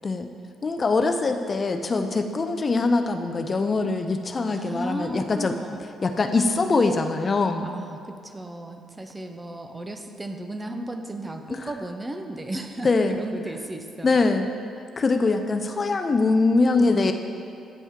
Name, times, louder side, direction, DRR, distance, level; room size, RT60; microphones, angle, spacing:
voice 1, 0.6-5.6 6.0-7.7 11.5-11.7 12.8-13.2 14.0-14.5 15.0-17.1, left 3 dB, 35° left, 7 dB, 0.3 m, -23 dB
voice 2, 4.5-5.8 7.6-14.2 16.8-17.1, right 1 dB, 15° right, 6 dB, 0.5 m, -35 dB
9.3 x 3.5 x 4.3 m, 2.6 s
cardioid pair, 90°, 0 cm